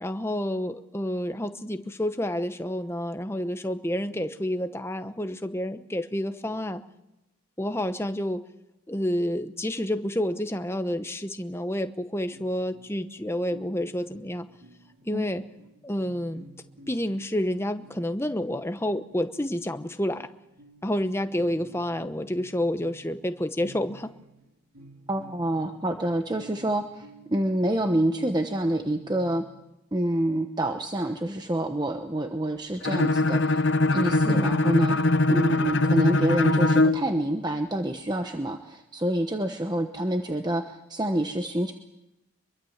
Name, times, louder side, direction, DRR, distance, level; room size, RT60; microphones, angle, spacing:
voice 1, 0.0-6.8 7.6-8.4 8.9-14.5 15.1-15.4 15.8-16.4 16.9-20.3 20.8-24.1 34.2-34.6, left 1 dB, 10° left, 9 dB, 1.0 m, -29 dB
sound 1, 12.3-29.6, right 2 dB, 90° right, 2.5 m, -52 dB
voice 2, 25.1-29.4 29.9-33.6 33.9-35.0 35.3-41.7, right 1 dB, 20° right, 5 dB, 1.0 m, -27 dB
Bowed string instrument, 32.8-37.1, left 2 dB, 55° left, 0.8 m, -22 dB
24.5 x 23.0 x 7.3 m, 0.94 s
head